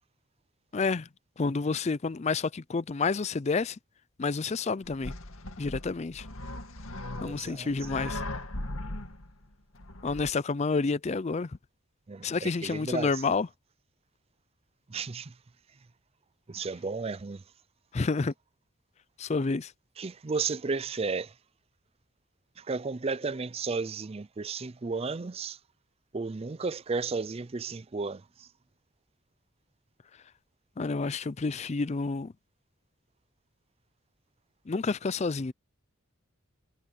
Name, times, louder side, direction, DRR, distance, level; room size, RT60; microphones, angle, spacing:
voice 1, 0.7-1.1 1.4-3.8 4.2-5.1 5.6-6.2 7.2-8.2 10.0-11.5 12.2-13.5 17.9-18.3 19.2-19.7 30.8-32.3 34.7-35.5, left 4 dB, 35° left, 0.4 m, -29 dB
sound 1, 4.8-10.3, left 1 dB, 90° left, 2.2 m, -39 dB
voice 2, 7.2-7.9 12.1-13.3 14.9-15.4 16.5-17.4 20.0-21.4 22.6-25.6 26.1-28.5, right 4 dB, 30° right, 0.5 m, -33 dB
head